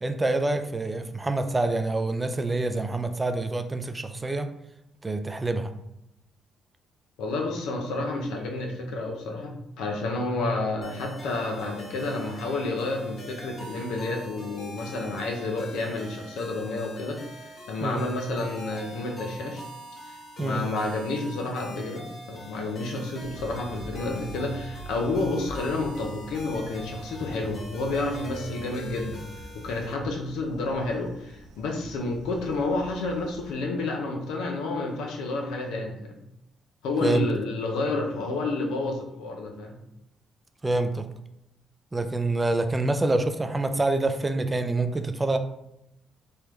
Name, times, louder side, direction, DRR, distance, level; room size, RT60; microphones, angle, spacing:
voice 1, 0.0-4.5 5.0-5.7 17.8-18.0 20.4-20.6 37.0-37.3 40.6-41.1 41.9-45.4, right 2 dB, 20° right, 8 dB, 0.3 m, -26 dB
voice 2, 7.2-19.7 20.1-29.2 29.6-36.2 36.8-39.8, left 2 dB, 90° left, 2 dB, 0.6 m, -30 dB
sound 1, 10.8-29.9, equal, 45° left, 0.8 m, -44 dB
sound 2, 23.2-33.5, right 1 dB, 90° right, 0.4 m, -44 dB
3.3 x 2.2 x 3.0 m, 0.84 s
cardioid pair, 90°, 0 cm